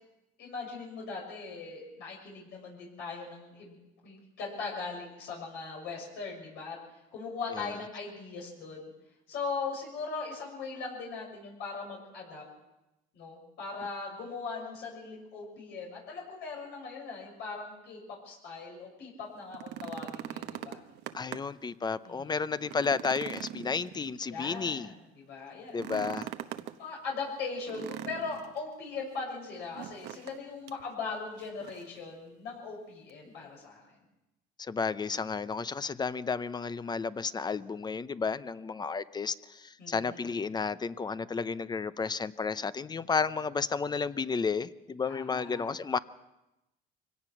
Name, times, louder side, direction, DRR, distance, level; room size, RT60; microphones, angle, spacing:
voice 1, 0.4-3.8 4.0-6.8 7.1-8.9 9.3-12.4 13.1-20.8 22.0-22.4 24.3-26.2 26.8-34.0 39.8-40.3 45.1-45.7, left 4 dB, 80° left, -2 dB, 6.8 m, -39 dB
sound 1, 19.4-21.6 22.1-22.2 22.6-24.5 25.7-26.8 27.7-28.6 29.7-30.4 30.7-30.8 31.4-32.0 33.1-33.2, right 12 dB, 80° right, 1.0 m, -41 dB
voice 2, 21.1-24.9 25.7-26.3 34.6-46.0, left 5 dB, 25° left, 15 dB, 0.7 m, -32 dB
24.5 x 17.5 x 6.0 m, 0.95 s
cardioid pair, 110°, 17 cm